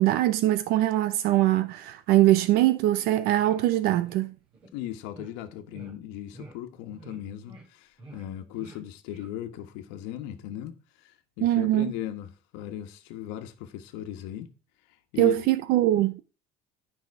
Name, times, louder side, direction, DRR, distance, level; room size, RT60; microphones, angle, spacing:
voice 1, 0.0-4.3 11.4-11.9 15.2-16.2, right 14 dB, 60° right, 0.7 m, -22 dB
sound 1, 3.0-3.1 3.3-3.6 4.0-4.2 4.5-4.7 5.1-5.3 5.7-5.9 6.3-6.5 6.9-7.2 7.4-7.6 8.0-8.2 8.5-8.8 9.1-9.2, right 2 dB, 25° right, 4.6 m, -48 dB
voice 2, 4.7-14.5 15.1-15.4, left 12 dB, 80° left, 1.3 m, -37 dB
12.5 x 5.6 x 4.7 m
cardioid pair, 170°, 18 cm